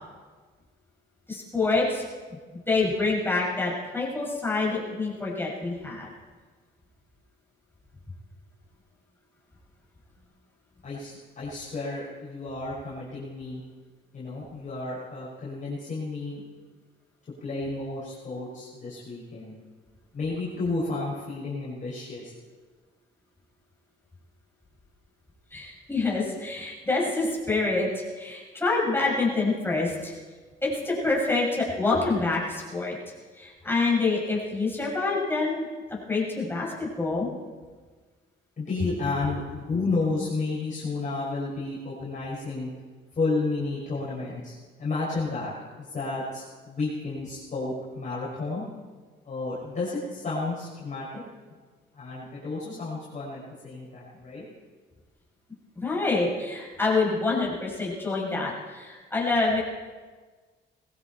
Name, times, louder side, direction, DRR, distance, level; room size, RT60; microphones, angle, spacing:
voice 1, 1.3-2.0 2.7-6.1 25.5-30.1 30.6-33.0 33.4-35.6 36.1-37.3 55.7-59.6, left 3 dB, 10° left, -5 dB, 6.7 m, -26 dB
voice 2, 10.8-13.6 14.1-16.4 17.4-19.5 20.1-22.3 38.6-42.7 43.2-48.6 49.2-51.2 51.9-54.4, left 3 dB, 40° left, -7 dB, 5.7 m, -32 dB
20.5 x 15.5 x 4.5 m, 1.4 s
cardioid pair, 90°, 20 cm